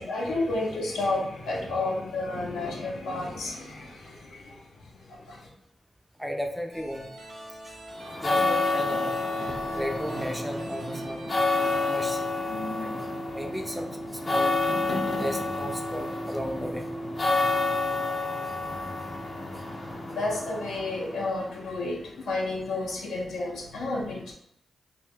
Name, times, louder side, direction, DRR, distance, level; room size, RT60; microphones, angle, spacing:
voice 1, 0.0-5.5 20.1-24.3, left 2 dB, 80° left, -2 dB, 0.7 m, -31 dB
voice 2, 6.2-7.1 8.0-9.2 9.7-11.2 11.8-12.3 12.8-13.1 13.3-14.6 15.2-16.9 19.6-19.7, equal, 5° right, 3 dB, 0.5 m, -35 dB
sound 1, 6.7-11.9, right 1 dB, 65° right, 0.7 m, -42 dB
sound 2, 8.0-21.5, left 2 dB, 45° left, 0.6 m, -29 dB
2.7 x 2.2 x 3.3 m, 0.74 s
supercardioid pair, 50°, 0 cm